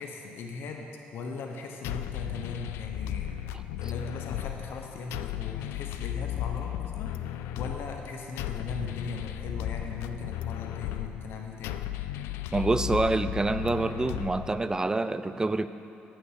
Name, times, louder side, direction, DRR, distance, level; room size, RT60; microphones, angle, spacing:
voice 1, 0.0-3.4 3.8-11.9, left 4 dB, 70° left, 2 dB, 0.9 m, -39 dB
sound 1, 1.8-14.9, left 12 dB, 90° left, 0.3 m, -35 dB
voice 2, 12.5-15.7, right 2 dB, 15° right, 12 dB, 0.4 m, -27 dB
9.5 x 6.3 x 6.4 m, 2.8 s
cardioid pair, 85°, 4 cm